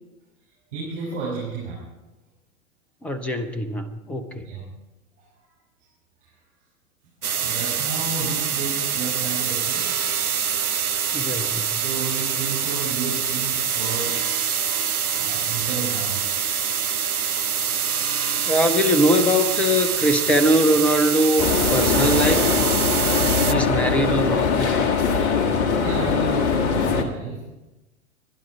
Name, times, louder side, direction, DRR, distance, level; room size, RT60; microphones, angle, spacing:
voice 1, 0.7-1.8 4.4-4.7 5.2-5.3 6.2-6.3 7.3-10.0 11.7-14.2 15.2-16.3 25.7-27.4, right 4 dB, 55° right, -6 dB, 5.8 m, -32 dB
voice 2, 3.0-4.4 11.1-11.8 18.5-21.4 21.7-22.6 23.5-24.9, equal, 5° left, 12 dB, 0.4 m, -21 dB
sound 1, 7.2-23.5, right 7 dB, 85° right, 0.7 m, -25 dB
sound 2, 21.4-27.0, left 5 dB, 35° left, 1.7 m, -21 dB
23.5 x 10.5 x 4.6 m, 1.0 s
figure-of-eight pair, 100°, 43 cm